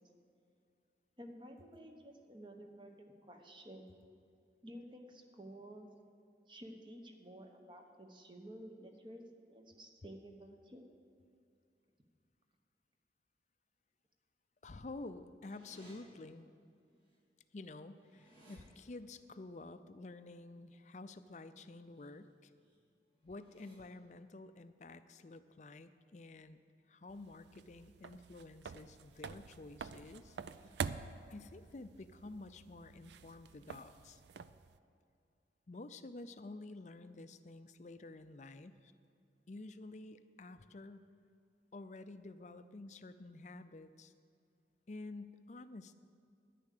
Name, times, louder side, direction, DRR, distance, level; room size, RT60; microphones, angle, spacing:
voice 1, 1.2-3.9 4.6-5.9 6.5-10.9, right 1 dB, 25° right, 4 dB, 1.0 m, -52 dB
voice 2, 14.6-16.5 17.5-22.5 23.2-26.6 26.9-30.4 31.3-34.2 35.7-38.9 39.5-41.1 41.7-44.1 44.9-45.9, left 2 dB, 40° left, 11 dB, 0.5 m, -50 dB
sound 1, 15.5-15.9 17.1-17.2 17.5-18.6 21.7-22.1 22.5-22.8 23.2-23.7, right 2 dB, 55° right, 3.7 m, -63 dB
sound 2, 27.1-34.8, right 6 dB, 75° right, 0.4 m, -47 dB
10.5 x 10.0 x 6.7 m, 2.4 s
head